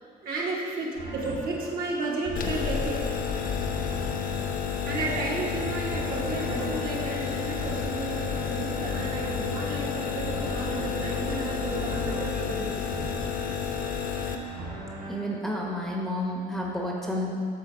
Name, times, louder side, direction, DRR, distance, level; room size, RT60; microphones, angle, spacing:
voice 1, 0.2-3.0 4.9-12.8, right 2 dB, 60° right, -4 dB, 1.7 m, -33 dB
sound 1, 0.9-15.1, right 2 dB, 75° right, 2.0 m, -40 dB
sound 2, 2.4-14.4, left 7 dB, 55° left, 0.7 m, -31 dB
voice 2, 15.1-17.3, left 1 dB, ahead, -3 dB, 1.0 m, -30 dB
8.1 x 3.6 x 6.3 m, 2.3 s
cardioid pair, 110°, 17 cm